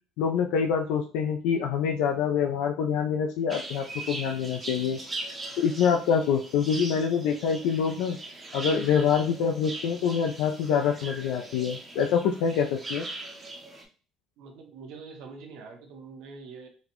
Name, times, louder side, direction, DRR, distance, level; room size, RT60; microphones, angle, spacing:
voice 1, 0.2-5.0 5.6-8.2 8.5-13.1, left 7 dB, 85° left, 3 dB, 0.3 m, -26 dB
sound 1, 3.5-13.8, right 2 dB, 15° right, 0.5 m, -40 dB
voice 2, 14.4-16.7, right 4 dB, 70° right, 4 dB, 0.8 m, -44 dB
4.1 x 2.1 x 2.9 m, 0.37 s
cardioid pair, 175°, 0 cm